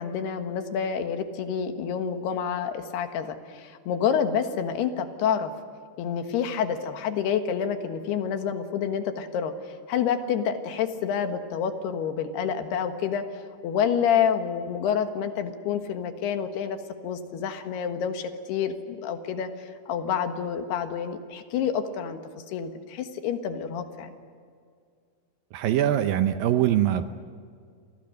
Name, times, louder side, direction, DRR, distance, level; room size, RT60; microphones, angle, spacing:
voice 1, 0.0-5.5 6.0-9.5 9.9-13.2 13.6-16.8 17.0-22.2 22.5-24.1, left 7 dB, 75° left, 7 dB, 3.5 m, -28 dB
voice 2, 25.5-27.0, right 11 dB, 75° right, 9 dB, 2.2 m, -23 dB
30.0 x 24.0 x 6.6 m, 2.2 s
omnidirectional pair, 4.7 m